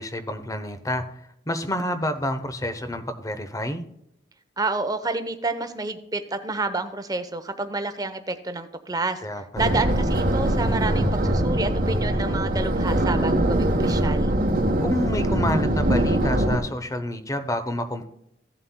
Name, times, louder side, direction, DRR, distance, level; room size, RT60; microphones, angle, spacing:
voice 1, 0.0-3.8 9.2-9.8 14.8-18.1, left 1 dB, 20° left, 10 dB, 0.8 m, -29 dB
voice 2, 4.6-9.2 9.6-14.3, right 3 dB, 20° right, 9 dB, 0.8 m, -29 dB
sound 1, 9.6-16.6, right 1 dB, 50° right, 1.0 m, -22 dB
15.5 x 7.5 x 2.2 m, 0.77 s
head